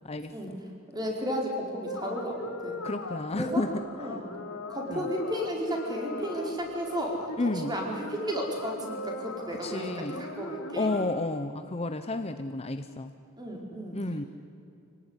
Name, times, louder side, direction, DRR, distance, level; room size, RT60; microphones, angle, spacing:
voice 1, 0.0-0.6 2.8-3.8 4.9-5.1 7.4-7.8 9.6-10.3 10.7-13.1 13.9-14.2, left 2 dB, 30° left, 9 dB, 0.8 m, -31 dB
voice 2, 0.9-2.8 3.3-3.6 4.0-4.2 4.7-10.9 13.4-14.0, equal, 20° right, 0 dB, 4.5 m, -33 dB
sound 1, 1.8-11.0, left 2 dB, 70° left, 3.6 m, -39 dB
26.0 x 18.0 x 9.8 m, 2.6 s
head